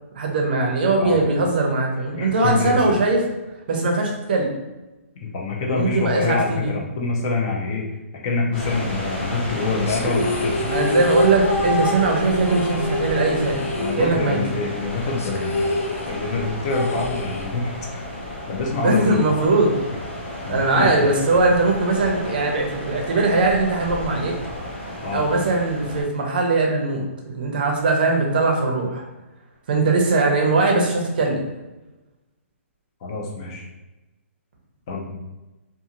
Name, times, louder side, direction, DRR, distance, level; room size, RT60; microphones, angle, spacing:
voice 1, 0.1-3.2 3.7-4.5 5.7-6.7 10.6-13.6 14.0-14.4 18.8-19.8 20.5-24.3 25.1-29.0 29.7-31.4, right 3 dB, 40° right, 0 dB, 0.6 m, -20 dB
voice 2, 2.2-2.9 5.2-7.8 8.2-10.8 13.8-15.7 16.1-18.0 18.5-19.3 20.4-21.1 25.0-25.2 33.0-33.7 34.9-35.1, left 3 dB, 25° left, -1 dB, 0.4 m, -26 dB
sound 1, 8.5-26.0, left 1 dB, 45° left, 1.2 m, -32 dB
sound 2, 9.9-14.5 14.8-14.9 15.2-17.8, left 2 dB, 90° left, 0.4 m, -26 dB
2.5 x 2.4 x 2.8 m, 1.1 s
hypercardioid pair, 175°, 8 cm